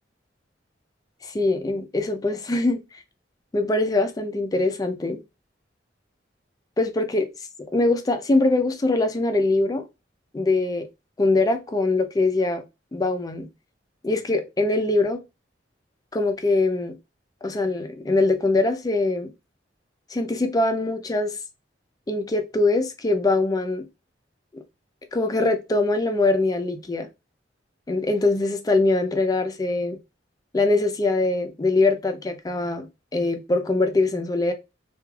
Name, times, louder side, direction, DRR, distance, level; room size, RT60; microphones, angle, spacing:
voice 1, 1.2-2.8 3.5-5.2 6.8-7.3 7.7-9.9 10.3-10.9 11.2-12.6 12.9-13.5 14.0-15.2 16.1-17.0 17.4-19.3 20.1-21.4 22.1-23.8 24.5-24.6 25.1-27.1 27.9-30.0 30.5-34.5, left 2 dB, 20° left, 0.4 m, -22 dB
3.1 x 2.3 x 2.2 m
head